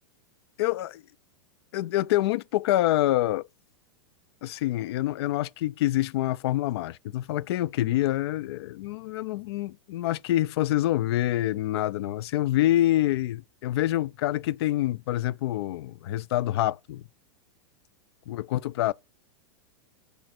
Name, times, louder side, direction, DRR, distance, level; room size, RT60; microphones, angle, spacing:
voice 1, 0.6-1.0 1.7-3.5 4.4-17.0 18.3-18.9, left 14 dB, 65° left, 0.4 m, -26 dB
6.5 x 4.2 x 4.3 m
hypercardioid pair, 115°, 14 cm